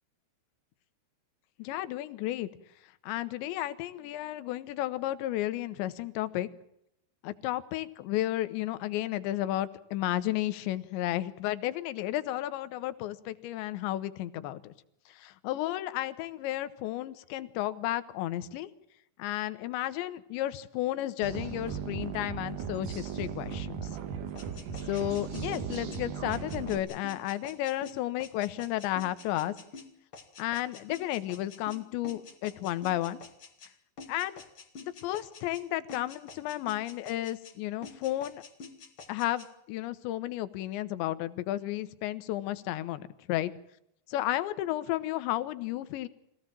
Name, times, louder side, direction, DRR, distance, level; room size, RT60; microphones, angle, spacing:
voice 1, 1.6-2.5 3.0-6.5 7.2-14.7 15.1-18.7 19.2-23.9 24.9-29.5 30.4-33.2 34.1-34.4 34.8-38.4 39.1-43.5 44.1-46.1, left 14 dB, 85° left, 13 dB, 3.3 m, -33 dB
sound 1, 21.2-26.8, right 7 dB, 55° right, 2.9 m, -37 dB
sound 2, 24.4-33.7 34.0-35.6 35.9-37.6 37.8-39.5, left 4 dB, 40° left, 2.2 m, -48 dB
24.0 x 17.0 x 7.6 m, 0.76 s
omnidirectional pair, 5.1 m